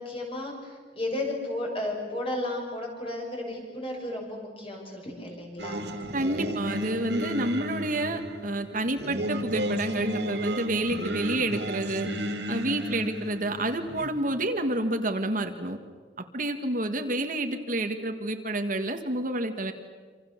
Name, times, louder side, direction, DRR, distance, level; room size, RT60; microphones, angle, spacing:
voice 1, 0.0-5.8 7.4-7.5 13.0-13.1 16.8-17.1, left 1 dB, 30° left, 0 dB, 6.9 m, -34 dB
Singing, 5.6-14.1, equal, 70° right, 2.9 m, -33 dB
voice 2, 6.1-12.1 12.5-15.8 16.3-19.7, right 1 dB, 50° right, 6 dB, 1.8 m, -29 dB
27.0 x 26.5 x 7.3 m, 1.5 s
head